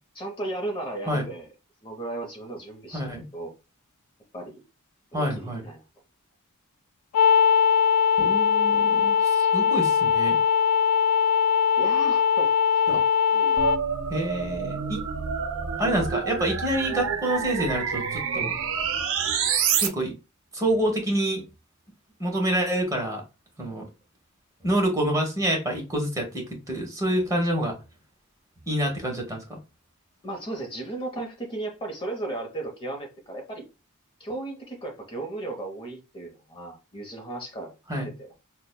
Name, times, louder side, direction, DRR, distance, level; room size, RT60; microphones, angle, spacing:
voice 1, 0.2-1.5 1.8-3.5 4.3-4.6 5.1-5.8 11.8-12.5 13.3-13.6 30.2-33.6 34.2-37.8 38.2-38.4, right 2 dB, 25° left, 0.7 m, -35 dB
voice 2, 2.9-3.2 5.1-5.6 8.2-10.4 12.9-13.0 14.1-15.0 15.8-18.5 19.8-20.1 20.5-21.4 22.2-23.2 23.6-23.8 24.6-27.8 28.7-29.6 37.9-38.1, right 1 dB, 15° right, 1.1 m, -27 dB
sound 1, 7.1-13.8, left 7 dB, 85° left, 0.3 m, -21 dB
sound 2, 13.6-19.9, right 6 dB, 65° right, 0.6 m, -28 dB
5.8 x 2.1 x 2.2 m
head